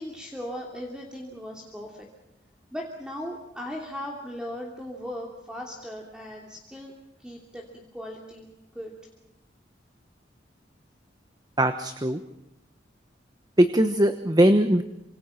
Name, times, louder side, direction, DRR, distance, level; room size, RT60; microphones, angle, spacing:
voice 1, 0.0-2.1 2.7-6.9 7.2-7.6 7.9-8.9, equal, 5° right, 0 dB, 2.9 m, -38 dB
voice 2, 11.6-12.2 13.6-14.8, right 1 dB, 20° right, 9 dB, 1.1 m, -20 dB
28.0 x 26.0 x 5.9 m, 0.92 s
head